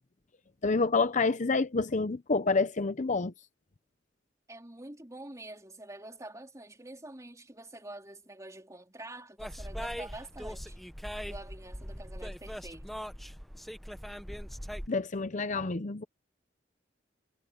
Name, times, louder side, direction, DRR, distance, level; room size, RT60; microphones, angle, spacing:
voice 1, 0.6-3.3 14.9-16.0, left 3 dB, 40° left, 0.7 m, -28 dB
voice 2, 4.5-10.8 11.3-12.9, right 2 dB, 15° right, 3.7 m, -46 dB
sound 1, 9.4-14.9, equal, ahead, 0.8 m, -40 dB
head